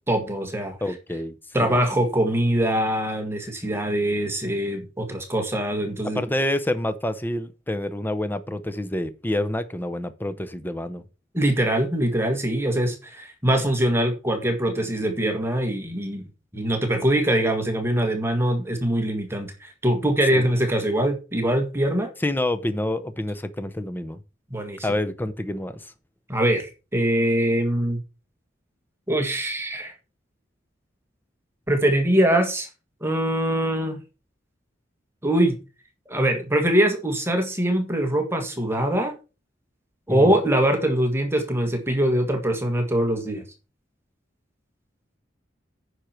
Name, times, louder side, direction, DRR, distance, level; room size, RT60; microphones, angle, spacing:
voice 1, 0.1-0.8 1.5-6.2 11.3-16.2 16.5-22.1 24.5-24.9 26.3-28.0 29.1-29.9 31.7-32.7 33.0-34.0 35.2-35.6 36.1-39.1 40.1-43.4, right 1 dB, 15° right, 1.8 m, -23 dB
voice 2, 0.8-1.4 1.6-1.7 6.0-11.0 20.3-20.5 22.2-24.2 24.8-25.9 40.1-40.3, left 1 dB, 10° left, 0.7 m, -27 dB
9.9 x 6.6 x 4.5 m
head